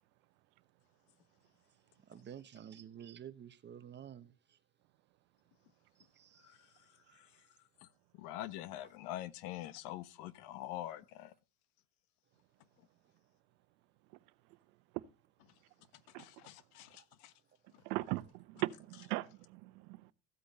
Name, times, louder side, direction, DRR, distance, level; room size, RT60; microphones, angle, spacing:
voice 1, 1.7-4.6 5.9-7.2 8.8-8.9 13.0-13.1 16.8-17.0, right 9 dB, 25° right, 1.0 m, -53 dB
voice 2, 7.1-7.4 7.8-7.9 8.1-11.3 16.2-17.3 17.7-17.8, left 14 dB, 75° left, 1.3 m, -45 dB
voice 3, 17.8-20.0, right 20 dB, 75° right, 1.0 m, -39 dB
15.0 x 8.5 x 4.1 m
cardioid pair, 140°, 46 cm